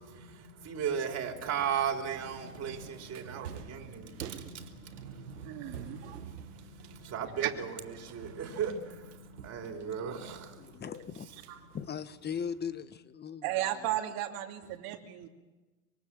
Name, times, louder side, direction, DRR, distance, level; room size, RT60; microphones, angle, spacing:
voice 1, 0.0-7.5 8.0-10.8, right 7 dB, 35° right, 3 dB, 3.8 m, -37 dB
sound 1, 0.8-12.3, left 2 dB, 70° left, 7.4 m, -55 dB
sound 2, 2.2-7.8 8.1-10.2 10.6-11.9, right 8 dB, 85° right, 2.2 m, -48 dB
voice 2, 5.4-6.2 7.4-7.5 7.9-8.1 11.5-11.6 13.4-15.3, right 13 dB, 50° right, 2 dB, 2.7 m, -35 dB
voice 3, 10.6-11.3 11.7-13.4, left 7 dB, 20° left, 13 dB, 1.3 m, -38 dB
25.0 x 22.5 x 7.7 m, 1.2 s
hypercardioid pair, 105°, 46 cm